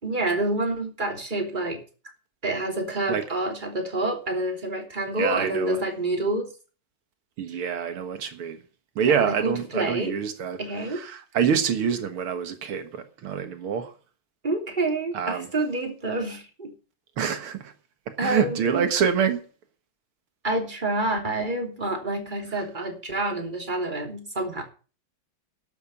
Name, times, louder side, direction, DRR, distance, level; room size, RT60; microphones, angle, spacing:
voice 1, 0.0-1.8 2.4-6.5 9.0-10.1 10.6-11.0 14.4-16.7 18.2-18.9 20.4-24.6, right 2 dB, 20° right, 3.4 m, -28 dB
voice 2, 5.2-5.8 7.4-8.6 9.0-13.9 15.1-15.5 17.2-17.7 18.1-19.4 22.5-22.6, right 7 dB, 90° right, 2.5 m, -26 dB
12.0 x 7.9 x 8.6 m
omnidirectional pair, 2.3 m